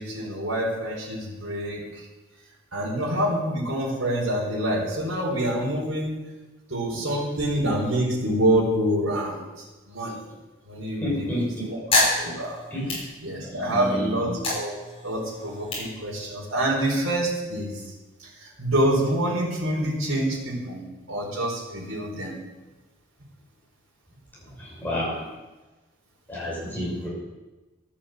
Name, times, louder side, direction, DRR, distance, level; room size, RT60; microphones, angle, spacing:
voice 1, 0.0-1.9 2.7-6.1 6.7-9.4 9.9-10.2 10.7-11.8 12.2-12.6 12.9-14.7 15.0-17.7 18.4-22.3, right 1 dB, 80° right, -4 dB, 4.1 m, -26 dB
voice 2, 11.0-11.6 12.2-12.3 12.7-13.0 13.5-14.1 24.6-25.2 26.3-27.1, left 1 dB, 10° left, -5 dB, 5.6 m, -30 dB
sound 1, 11.2-13.7 14.1-16.8, left 2 dB, 30° left, 5.7 m, -28 dB
13.5 x 8.8 x 7.8 m, 1.2 s
head